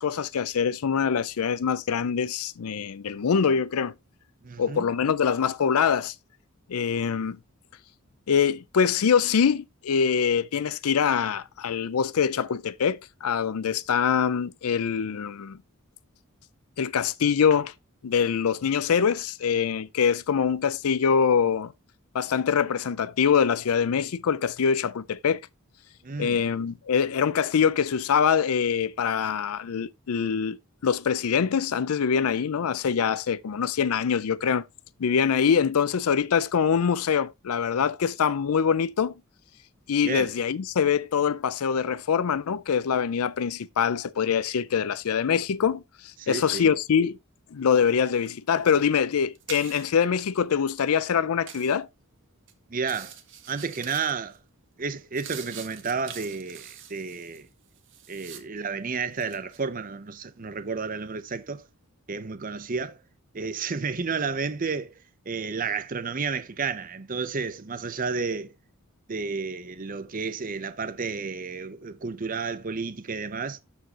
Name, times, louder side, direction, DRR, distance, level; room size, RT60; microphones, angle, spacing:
voice 1, 0.0-3.9 4.6-6.1 6.7-7.4 8.3-15.6 16.8-17.7 18.0-21.7 22.1-25.4 26.2-30.6 30.8-34.6 35.0-39.1 39.9-45.8 46.3-47.2 47.5-51.9, left 7 dB, 80° left, 0.5 m, -24 dB
voice 2, 4.4-4.9 26.0-26.4 40.0-40.3 46.2-46.7 52.7-53.2 53.5-54.4 54.8-57.5 58.1-61.6 62.1-63.0 63.3-65.0 65.3-68.5 69.1-73.6, right 5 dB, 40° right, 0.6 m, -31 dB
sound 1, 47.7-48.0 48.2-50.0 50.6-50.9 51.5-51.8 52.4-52.5 52.8-54.4 54.7-58.7 59.0-59.6, right 9 dB, 55° right, 1.5 m, -44 dB
13.0 x 4.6 x 2.9 m
head